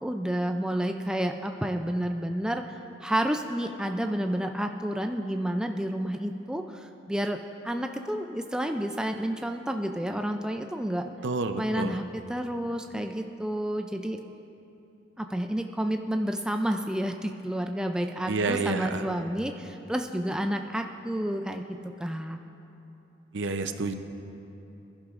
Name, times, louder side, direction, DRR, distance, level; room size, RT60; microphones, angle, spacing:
voice 1, 0.0-7.4 7.6-11.0 11.6-14.2 15.2-22.4, right 1 dB, 5° right, 4 dB, 0.3 m, -30 dB
voice 2, 11.2-12.0 18.3-19.0 23.3-23.9, right 3 dB, 70° right, 8 dB, 0.6 m, -29 dB
20.5 x 11.5 x 2.5 m, 3.0 s
head